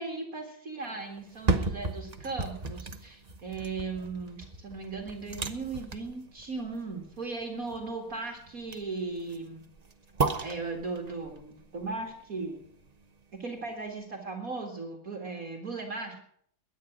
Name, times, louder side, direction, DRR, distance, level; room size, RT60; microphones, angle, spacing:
voice 1, 0.0-9.7 10.4-12.6 13.3-16.2, right 3 dB, 45° right, 2 dB, 2.4 m, -37 dB
sound 1, 1.2-13.2 13.6-13.7, right 3 dB, 30° right, 0.8 m, -35 dB
22.0 x 10.0 x 6.1 m, 0.66 s
omnidirectional pair, 2.0 m